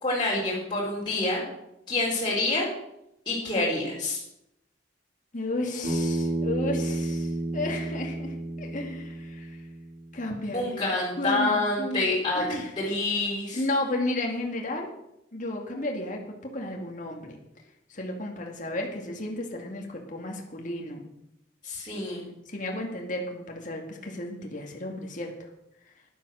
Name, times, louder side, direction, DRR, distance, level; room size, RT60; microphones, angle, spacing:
voice 1, 0.0-1.4 1.9-2.7 3.3-4.2 10.5-12.4 12.8-13.6 21.6-22.2, left 2 dB, 25° left, -6 dB, 4.3 m, -27 dB
voice 2, 5.3-9.6 10.1-10.8 11.2-12.1 12.4-12.7 13.5-14.9 15.3-17.4 17.9-21.0 22.5-25.3, left 1 dB, 45° left, 1 dB, 2.2 m, -33 dB
Bass guitar, 5.8-10.1, right 1 dB, 70° right, 5.0 m, -31 dB
11.5 x 11.0 x 6.3 m, 0.83 s
head